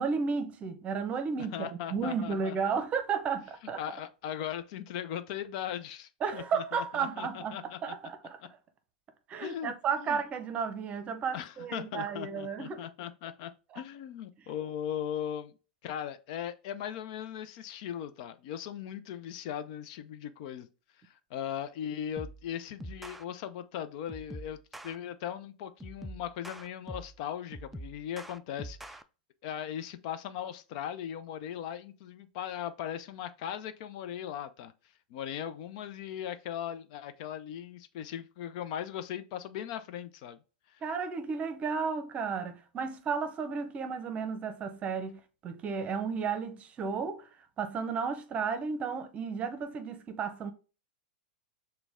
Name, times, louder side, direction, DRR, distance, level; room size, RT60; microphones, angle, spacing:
voice 1, 0.0-3.8 6.2-8.4 9.3-12.8 40.8-47.3 47.6-50.5, right 5 dB, 30° right, 0.7 m, -33 dB
voice 2, 1.5-2.6 3.8-7.9 9.4-10.2 11.3-15.5 15.8-20.7 21.0-24.6 24.8-29.0 29.4-34.7 35.1-40.4 40.7-40.8, left 10 dB, 55° left, 0.5 m, -38 dB
sound 1, 22.2-22.5 22.8-23.2 24.1-25.0 25.8-27.2 27.5-29.0, right 1 dB, 5° right, 0.3 m, -44 dB
6.0 x 2.2 x 3.5 m
hypercardioid pair, 110°, 5 cm